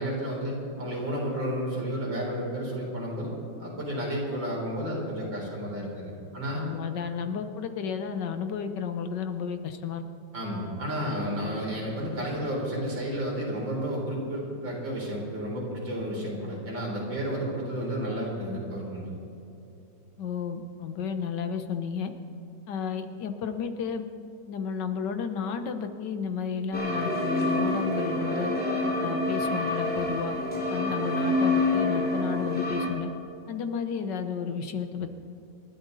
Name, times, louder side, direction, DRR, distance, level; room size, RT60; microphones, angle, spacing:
voice 1, 0.0-3.3 3.6-6.6 10.3-19.1, equal, 90° right, -3 dB, 5.2 m, -32 dB
voice 2, 6.5-10.0 20.2-22.1 22.7-24.1 24.5-28.5 29.0-30.4 30.7-33.1 33.5-35.2, left 6 dB, 70° left, 8 dB, 1.6 m, -32 dB
sound 1, 26.7-32.9, left 2 dB, 5° left, 2.6 m, -27 dB
28.5 x 12.0 x 4.1 m, 2.8 s
omnidirectional pair, 2.0 m